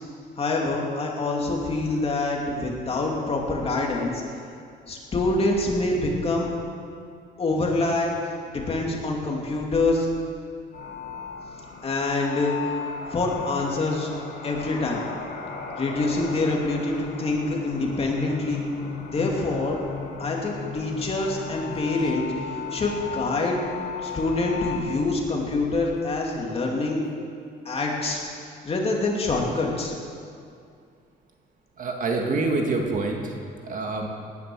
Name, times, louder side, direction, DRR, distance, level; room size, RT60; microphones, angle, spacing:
voice 1, 0.4-4.1 4.9-6.5 7.4-8.1 8.5-10.1 11.8-12.6 13.1-14.1 14.4-15.1 15.8-18.6 19.1-19.8 20.2-22.2 22.7-23.6 24.0-27.0 27.6-28.2 28.6-29.9, left 2 dB, 35° left, -1 dB, 2.8 m, -25 dB
sound 1, 10.7-24.8, left 6 dB, 85° left, 3.0 m, -36 dB
voice 2, 21.7-22.1 31.8-33.4 33.6-34.1, right 3 dB, 45° right, 1 dB, 2.2 m, -27 dB
18.5 x 11.0 x 6.3 m, 2.3 s
cardioid pair, 125°, 18 cm